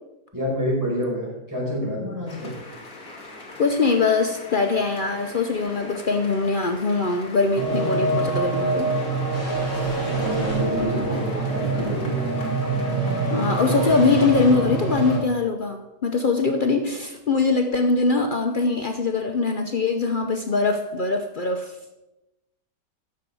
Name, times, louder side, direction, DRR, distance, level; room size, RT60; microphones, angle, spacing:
voice 1, 0.3-2.6 10.1-12.3, equal, 10° right, -5 dB, 4.7 m, -28 dB
sound 1, 2.3-14.5, left 2 dB, 50° left, 2.4 m, -41 dB
voice 2, 3.6-9.0 13.3-21.8, left 4 dB, 80° left, 4 dB, 0.4 m, -22 dB
sound 2, 7.5-15.2, right 3 dB, 35° left, 3.7 m, -25 dB
10.5 x 6.7 x 6.9 m, 0.98 s
omnidirectional pair, 2.0 m